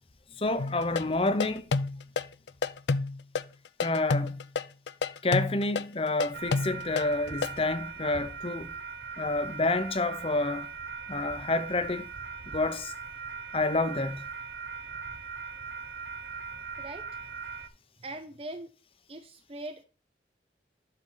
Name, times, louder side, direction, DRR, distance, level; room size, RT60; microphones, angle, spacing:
voice 1, 0.4-1.6 3.8-4.3 5.2-8.7 9.2-10.7 11.1-12.0 12.5-12.9 13.5-14.3, left 2 dB, 30° left, 0.8 m, -29 dB
sound 1, 0.6-7.6, left 4 dB, 80° left, 0.5 m, -29 dB
sound 2, 6.3-17.7, right 5 dB, 60° right, 0.8 m, -40 dB
voice 2, 18.0-18.7 19.1-19.8, right 2 dB, 35° right, 0.7 m, -41 dB
11.5 x 4.4 x 4.0 m
head